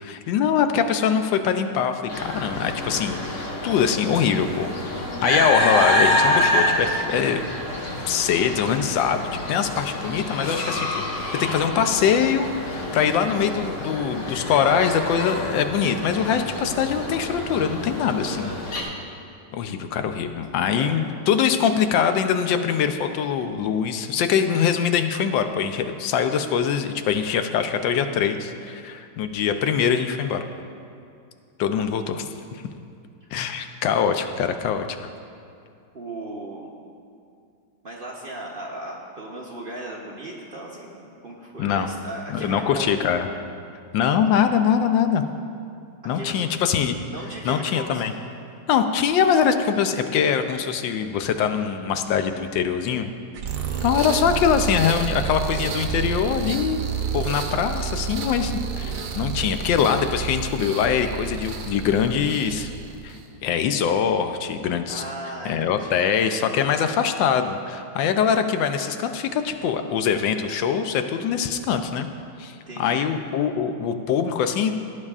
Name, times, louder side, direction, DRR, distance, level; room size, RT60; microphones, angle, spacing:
voice 1, 0.0-4.7 5.2-7.4 8.1-10.9 11.4-18.5 19.5-30.4 31.6-32.6 33.3-35.0 41.6-41.9 42.3-43.3 43.9-45.2 46.1-47.0 47.4-48.1 48.7-53.1 53.8-56.8 57.1-62.7 63.0-63.2 63.4-65.0 65.4-72.1 72.4-74.7, left 7 dB, 85° left, 8 dB, 1.3 m, -23 dB
sound 1, 2.1-18.8, left 1 dB, 45° left, 1.5 m, -27 dB
voice 2, 18.2-18.6 20.7-20.9 33.2-33.3 35.9-36.7 37.8-42.9 46.1-46.4 47.1-48.1 53.5-53.8 64.9-66.0 72.5-73.0, right 1 dB, 45° right, -3 dB, 0.7 m, -37 dB
sound 2, 53.3-63.3, right 6 dB, 65° right, 1.2 m, -30 dB
16.5 x 9.8 x 2.4 m, 2.4 s
omnidirectional pair, 2.0 m